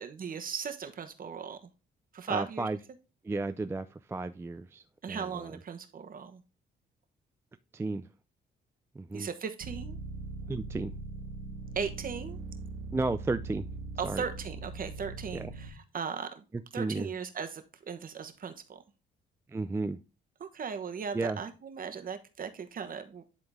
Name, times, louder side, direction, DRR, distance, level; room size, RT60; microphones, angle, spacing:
voice 1, 0.0-1.6 2.1-2.7 5.0-6.4 9.1-10.0 11.7-12.4 14.0-16.3 16.7-18.8 20.4-23.2, right 6 dB, 45° right, 1.2 m, -37 dB
voice 2, 2.3-2.8 3.2-5.6 7.7-8.1 8.9-9.3 10.5-10.9 12.9-13.7 14.0-14.3 15.3-15.5 16.5-17.1 19.5-20.0 21.1-21.4, right 3 dB, 15° right, 0.3 m, -33 dB
sound 1, 9.6-15.7, right 3 dB, 75° right, 1.8 m, -41 dB
10.5 x 3.8 x 3.6 m
cardioid pair, 90°, 20 cm